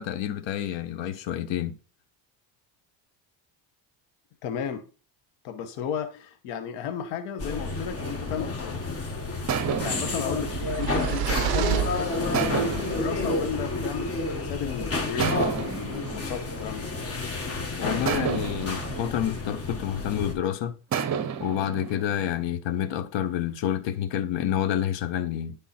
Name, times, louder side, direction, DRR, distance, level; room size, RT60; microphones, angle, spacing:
voice 1, 0.0-1.8 17.8-20.8 21.4-25.6, left 10 dB, 60° left, 1.0 m, -28 dB
voice 2, 4.4-4.8 5.4-8.8 9.8-16.9, left 7 dB, 90° left, 1.0 m, -34 dB
sound 1, 7.4-20.3, left 3 dB, 30° left, 1.7 m, -30 dB
sound 2, 7.6-8.9 9.5-11.7 12.3-14.5 15.2-17.5 18.1-20.3 20.9-22.5, right 7 dB, 35° right, 0.8 m, -33 dB
sound 3, 10.3-12.7, right 14 dB, 50° right, 0.5 m, -29 dB
9.4 x 3.6 x 4.2 m
cardioid pair, 95°, 49 cm